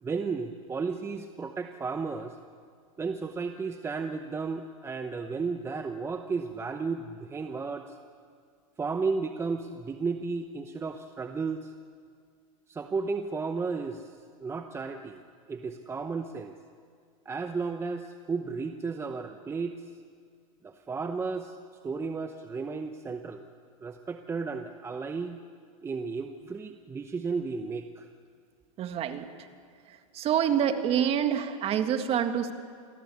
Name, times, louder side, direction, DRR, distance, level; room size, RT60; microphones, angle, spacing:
voice 1, 0.0-2.4 3.0-8.0 8.8-11.7 12.7-15.2 15.5-16.5 17.2-19.9 20.6-21.6 21.8-23.5 23.8-25.4 25.8-28.1, right 4 dB, 15° right, 7 dB, 0.9 m, -33 dB
voice 2, 28.8-29.5 29.9-32.5, right 9 dB, 35° right, 8 dB, 1.9 m, -27 dB
27.0 x 18.5 x 8.5 m, 2.1 s
supercardioid pair, 125°, 18 cm